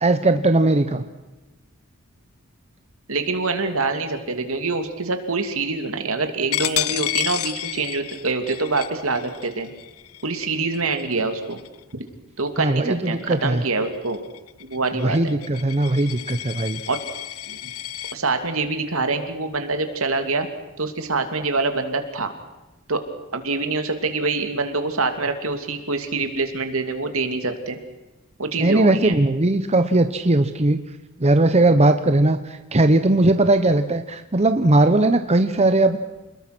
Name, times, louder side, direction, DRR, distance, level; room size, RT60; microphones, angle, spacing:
voice 1, 0.0-1.0 12.6-13.6 15.0-16.8 28.6-30.8 31.2-36.0, right 2 dB, 30° right, 9 dB, 0.9 m, -19 dB
voice 2, 3.1-9.7 10.2-11.6 12.4-14.2 14.6-15.3 16.9-17.0 17.5-17.7 18.1-20.5 20.8-22.3 22.9-23.0 23.3-27.8 28.4-29.1, right 3 dB, 70° right, 7 dB, 2.8 m, -25 dB
Coin (dropping), 6.5-11.9 12.4-12.7 13.0-18.2, left 13 dB, 85° left, 0.8 m, -31 dB
28.5 x 20.5 x 6.2 m, 1.1 s
head